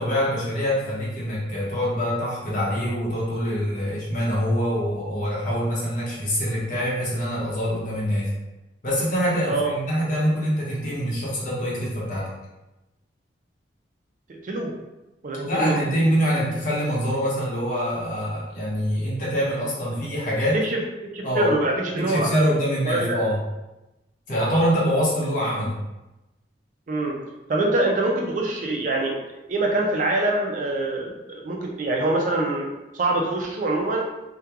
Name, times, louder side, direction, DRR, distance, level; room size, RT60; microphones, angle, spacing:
voice 1, 0.0-8.3 8.8-12.3 15.4-20.6 21.2-21.5 21.9-23.4 24.3-25.7, equal, 45° left, -6 dB, 0.8 m, -24 dB
voice 2, 14.3-14.7 15.2-15.8 20.5-22.5 22.8-23.2 26.9-27.2 27.5-32.7 32.9-34.0, right 2 dB, 45° right, 1 dB, 0.3 m, -25 dB
2.9 x 2.2 x 2.3 m, 1.0 s
head